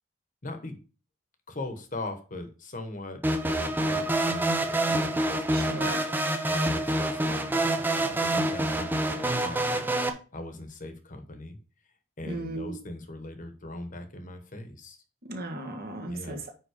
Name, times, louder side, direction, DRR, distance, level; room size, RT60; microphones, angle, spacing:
voice 1, 0.4-0.8 1.5-6.0 6.4-9.9 10.3-11.6 12.2-15.0 16.1-16.4, left 2 dB, 40° left, 7 dB, 1.2 m, -40 dB
sound 1, 3.2-10.1, right 1 dB, 10° right, 0.6 m, -27 dB
voice 2, 5.5-6.1 12.2-12.8 15.2-16.5, right 2 dB, 45° right, 3 dB, 1.5 m, -36 dB
9.4 x 3.7 x 4.9 m, 0.35 s
head